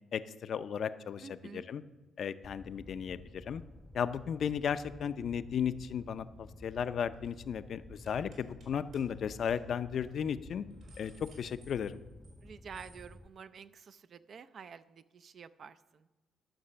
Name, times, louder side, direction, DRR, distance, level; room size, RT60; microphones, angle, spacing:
voice 1, 0.1-1.8 2.2-3.6 3.9-10.6 11.0-12.0, left 8 dB, 60° left, 13 dB, 0.5 m, -35 dB
voice 2, 1.2-1.7 12.4-16.1, right 6 dB, 55° right, 13 dB, 0.4 m, -49 dB
Fire, 2.4-13.3, left 1 dB, 5° left, 0.4 m, -53 dB
sound 1, 6.6-6.9 7.1-7.4 8.1-8.7 8.9-9.0 9.4-9.6 9.9-10.1 10.5-12.4 12.7-13.1, right 2 dB, 70° right, 4.1 m, -61 dB
11.5 x 6.1 x 6.7 m, 1.1 s
cardioid pair, 90°, 0 cm